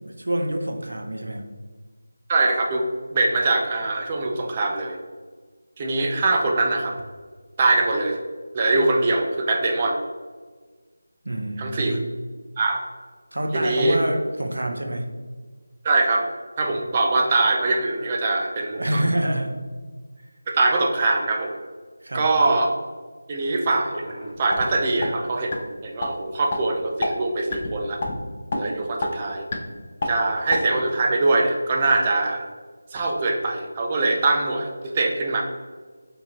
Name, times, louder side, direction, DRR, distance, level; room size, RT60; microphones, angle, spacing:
voice 1, 0.0-1.4 11.2-12.0 13.3-15.1 18.8-19.6 22.0-22.2, right 1 dB, 75° right, 4 dB, 0.7 m, -26 dB
voice 2, 2.3-2.9 3.1-5.0 5.8-7.0 7.6-8.2 8.5-10.0 11.6-12.0 12.6-12.8 13.5-14.0 15.8-16.3 16.6-19.0 20.5-21.5 22.1-22.7 23.3-28.0 28.6-29.5 30.1-32.5 32.9-35.4, right 2 dB, 25° right, 1 dB, 0.4 m, -22 dB
sound 1, 23.9-24.6 25.0-25.1 25.5-25.6 26.0-26.1 26.5-26.6 27.0-27.1 27.5-27.7 28.0-28.1 28.5-28.6 29.0-29.1 29.5-29.6 30.0-30.1 30.5-30.6, left 3 dB, 35° left, 0.5 m, -27 dB
4.5 x 2.9 x 2.9 m, 1.5 s
figure-of-eight pair, 170°, 0 cm